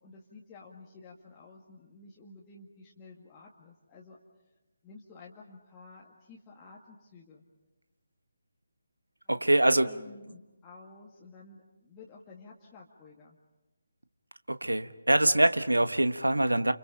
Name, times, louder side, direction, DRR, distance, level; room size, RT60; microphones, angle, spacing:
voice 1, 0.0-4.2 4.8-7.4 9.4-13.4, left 3 dB, 15° left, -5 dB, 2.0 m, -52 dB
voice 2, 9.3-9.9 14.5-16.7, right 1 dB, 80° right, 11 dB, 1.3 m, -24 dB
29.5 x 29.0 x 5.1 m, 1.1 s
figure-of-eight pair, 150°, 0 cm